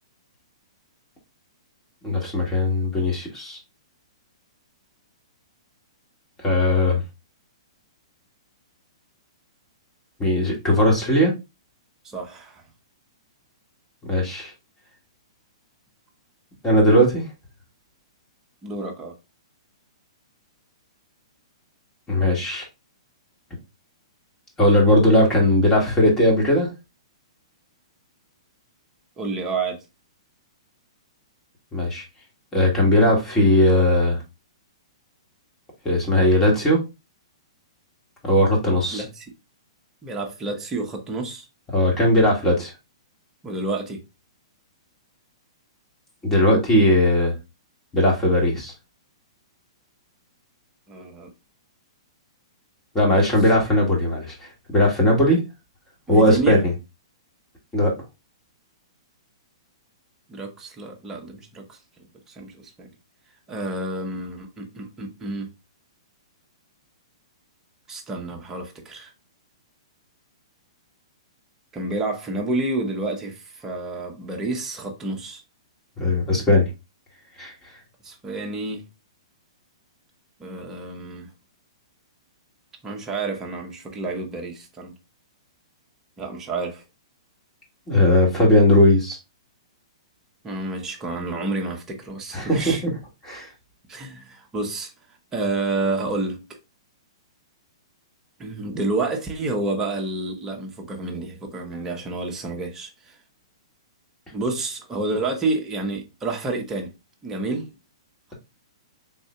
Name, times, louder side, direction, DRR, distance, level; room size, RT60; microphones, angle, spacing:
voice 1, 2.0-3.6 6.4-7.0 10.2-11.3 14.0-14.5 16.6-17.2 22.1-22.6 24.6-26.7 31.7-32.0 32.5-34.2 35.8-36.8 38.2-39.0 41.7-42.7 46.2-47.3 47.9-48.7 52.9-55.4 56.1-56.6 57.7-57.9 76.0-76.6 77.4-77.5 87.9-89.2 92.3-92.8 93.2-93.5, left 1 dB, 15° left, 1.6 m, -18 dB
voice 2, 12.0-12.6 18.6-19.1 29.2-29.8 38.9-39.2 40.0-41.5 43.4-44.0 50.9-51.3 53.1-53.2 56.1-56.7 60.3-61.8 62.3-62.9 63.5-65.5 67.9-69.1 71.7-75.4 78.0-78.8 80.4-81.3 82.8-84.9 86.2-86.8 90.4-92.8 93.9-94.9 95.3-96.4 98.4-103.1 104.3-106.9 107.2-107.7, right 2 dB, 15° right, 0.9 m, -29 dB
3.7 x 2.6 x 3.3 m
hypercardioid pair, 120°, 3 cm